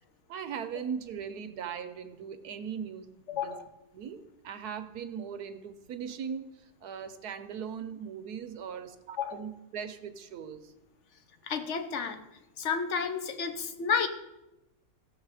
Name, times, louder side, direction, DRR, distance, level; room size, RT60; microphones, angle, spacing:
voice 1, 0.3-3.1 3.3-3.6 3.9-4.2 4.4-10.7, right 7 dB, 80° right, 9 dB, 1.4 m, -39 dB
voice 2, 3.3-3.7 9.2-9.4 11.4-12.2 12.6-14.1, left 6 dB, 50° left, 8 dB, 1.2 m, -31 dB
16.0 x 6.8 x 4.8 m, 0.96 s
omnidirectional pair, 1.6 m